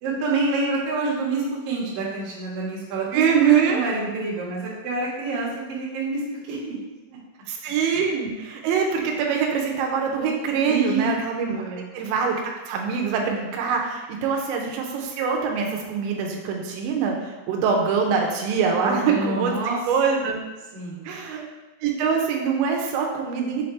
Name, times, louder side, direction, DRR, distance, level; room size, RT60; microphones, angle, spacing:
voice 1, 0.0-6.2 6.5-6.8 7.1-7.2 10.7-11.1 11.5-11.9 18.7-19.8 20.7-21.1, right 3 dB, 65° right, -5 dB, 2.6 m, -27 dB
voice 2, 3.1-3.8 7.5-12.4 12.7-19.5 19.9-20.4 21.0-21.4 21.8-23.6, right 6 dB, 85° right, 1 dB, 3.0 m, -24 dB
7.1 x 4.2 x 3.2 m, 1.1 s
omnidirectional pair, 5.1 m